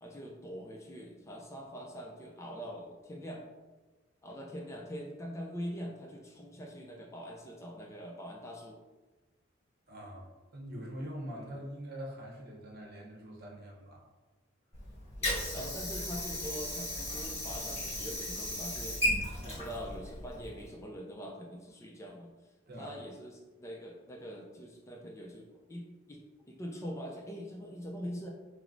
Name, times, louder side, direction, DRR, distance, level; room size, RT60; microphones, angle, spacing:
voice 1, 0.0-3.5 4.2-8.8 11.3-11.5 15.2-19.0 19.4-22.3 22.8-28.3, equal, 15° left, 0 dB, 0.3 m, -43 dB
voice 2, 9.9-14.0 22.7-22.9, equal, 50° right, -1 dB, 0.8 m, -44 dB
Water / Sink (filling or washing), 14.7-20.7, left 1 dB, 30° left, 1.5 m, -36 dB
5.9 x 2.0 x 2.5 m, 1.2 s
head